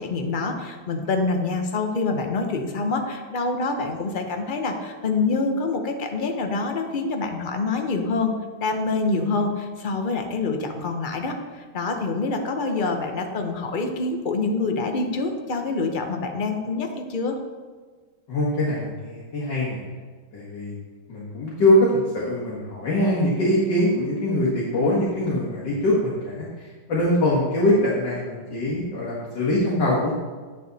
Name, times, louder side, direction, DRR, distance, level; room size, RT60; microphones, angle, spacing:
voice 1, 0.0-8.3 8.6-17.4, left 3 dB, 50° left, 4 dB, 0.6 m, -26 dB
voice 2, 18.3-19.8 20.3-20.8 21.1-30.1, left 1 dB, 70° left, -7 dB, 2.2 m, -23 dB
9.5 x 6.8 x 4.0 m, 1.5 s
omnidirectional pair, 2.0 m